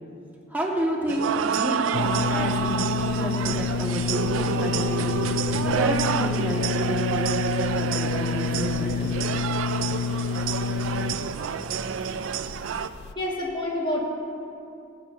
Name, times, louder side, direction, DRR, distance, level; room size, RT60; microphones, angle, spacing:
voice 1, 0.5-5.2 5.6-9.2, equal, 10° right, -3 dB, 1.3 m, -30 dB
sound 1, 1.1-12.9, right 7 dB, 80° right, 0.4 m, -28 dB
sound 2, 1.9-13.1, left 6 dB, 60° left, 0.3 m, -29 dB
voice 2, 13.1-14.0, left 1 dB, 25° left, -3 dB, 1.6 m, -27 dB
16.5 x 9.1 x 2.6 m, 2.6 s
head